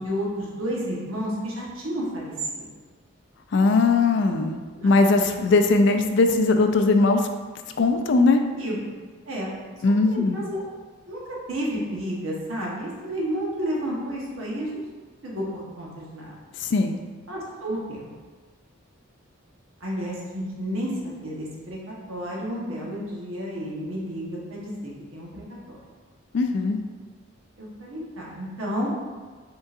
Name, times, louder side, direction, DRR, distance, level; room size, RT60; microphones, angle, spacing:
voice 1, 0.0-2.7 4.7-5.0 8.5-8.8 9.3-9.5 10.0-10.6 11.1-11.2 11.5-14.7 15.2-16.3 17.3-18.0 19.8-25.8 27.6-28.9, equal, 75° right, -4 dB, 1.1 m, -31 dB
voice 2, 3.5-7.3 7.8-8.4 9.8-10.4 16.6-17.0 26.3-26.8, left 3 dB, 55° left, 6 dB, 0.3 m, -20 dB
5.2 x 3.8 x 2.5 m, 1.4 s
head